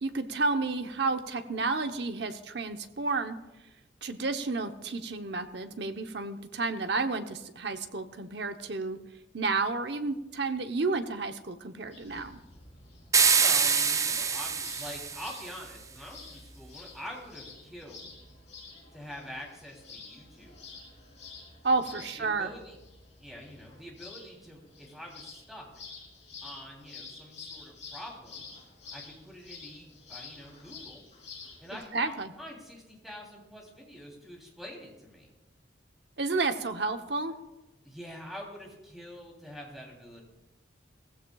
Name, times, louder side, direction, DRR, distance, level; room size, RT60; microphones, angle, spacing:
voice 1, 0.0-3.4 4.0-9.0 9.3-12.4 21.6-22.5 31.9-32.3 36.2-37.4, right 3 dB, 65° right, 7 dB, 0.9 m, -31 dB
sound 1, 11.9-31.8, left 4 dB, 35° left, 3.3 m, -49 dB
sound 2, 13.1-15.5, right 6 dB, 15° right, 0.3 m, -25 dB
voice 2, 13.4-18.0 18.9-20.6 21.8-22.8 23.2-25.7 26.4-28.4 28.9-31.0 31.6-35.3 37.8-40.2, equal, ahead, -2 dB, 3.2 m, -45 dB
18.0 x 15.5 x 2.4 m, 1.0 s
head